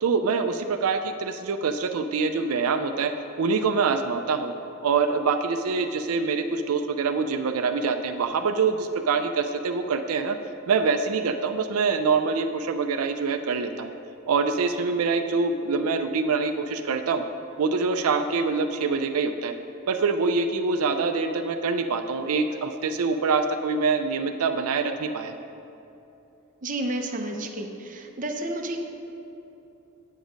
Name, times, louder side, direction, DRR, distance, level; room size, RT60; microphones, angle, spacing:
voice 1, 0.0-3.1 3.4-4.5 4.8-10.4 10.7-13.9 14.3-17.2 17.6-19.5 19.9-25.4, right 4 dB, 90° right, 7 dB, 0.4 m, -25 dB
voice 2, 26.6-28.8, right 1 dB, 40° right, 3 dB, 0.7 m, -31 dB
9.0 x 7.3 x 5.1 m, 2.9 s
head